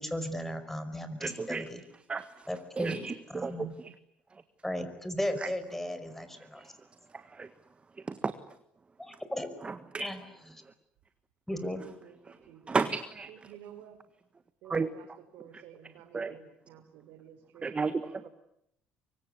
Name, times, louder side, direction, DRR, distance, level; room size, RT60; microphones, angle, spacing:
voice 1, 0.0-1.8 2.5-3.0 3.3-3.7 4.6-6.6 9.0-9.5 10.0-10.2 10.5-10.6 11.5-11.8, left 1 dB, 5° left, 10 dB, 5.2 m, -36 dB
voice 2, 1.2-1.6 2.1-2.3 2.8-3.9 5.4-5.5 6.6-6.7 7.3-7.5 8.1-8.3 9.6-10.1 12.3-12.4 12.7-13.5 14.7-14.9 16.1-16.4 17.6-18.3, right 4 dB, 25° right, 11 dB, 1.6 m, -33 dB
voice 3, 12.0-12.7 13.3-14.0 14.6-15.1 15.3-17.9, right 10 dB, 70° right, 11 dB, 4.1 m, -52 dB
24.5 x 23.5 x 9.8 m, 0.75 s
hypercardioid pair, 65°, 4 cm